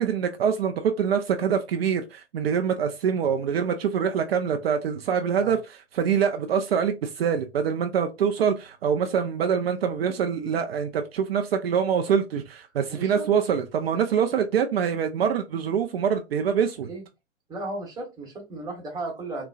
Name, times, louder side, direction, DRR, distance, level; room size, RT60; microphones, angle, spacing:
voice 1, 0.0-16.9, right 7 dB, 60° right, 0.5 m, -25 dB
voice 2, 12.9-13.3 16.9-17.0 17.5-19.5, right 2 dB, 10° right, 1.1 m, -35 dB
3.8 x 2.2 x 2.3 m
hypercardioid pair, 125°, 34 cm